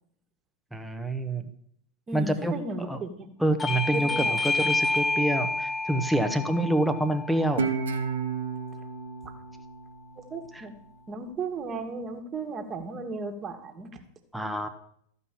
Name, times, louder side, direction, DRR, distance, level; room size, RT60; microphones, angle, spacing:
voice 1, 0.7-1.5 2.1-3.0 3.4-7.7 14.3-14.7, right 1 dB, ahead, 5 dB, 1.2 m, -27 dB
voice 2, 2.1-3.3 3.9-4.4 6.1-6.3 9.2-9.3 10.2-10.7 11.1-14.0, right 3 dB, 25° right, 5 dB, 1.9 m, -35 dB
Bell / Doorbell, 3.6-8.8, left 3 dB, 15° left, 0.5 m, -30 dB
Guitar, 7.6-10.8, right 5 dB, 65° right, 1.1 m, -32 dB
14.0 x 5.5 x 7.5 m, 0.67 s
figure-of-eight pair, 90°, 0 cm